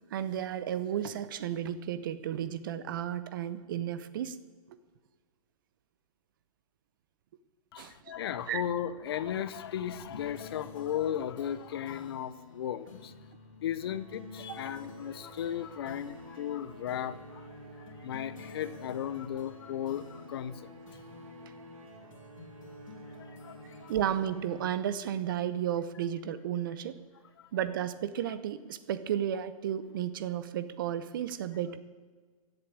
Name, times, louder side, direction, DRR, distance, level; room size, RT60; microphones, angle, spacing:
voice 1, 0.1-4.4 7.8-8.1 8.5-8.6 14.5-14.6 23.9-27.0 27.5-31.8, right 10 dB, 35° right, 14 dB, 0.8 m, -33 dB
voice 2, 7.7-13.1 13.6-17.4 18.0-20.7 23.2-23.9 27.4-27.5, left 10 dB, 45° left, 15 dB, 0.8 m, -36 dB
sound 1, 9.9-25.7, left 4 dB, 65° left, 2.7 m, -51 dB
sound 2, 13.8-25.3, right 1 dB, 65° right, 4.0 m, -51 dB
15.5 x 8.0 x 8.9 m, 1.5 s
hypercardioid pair, 165°, 18 cm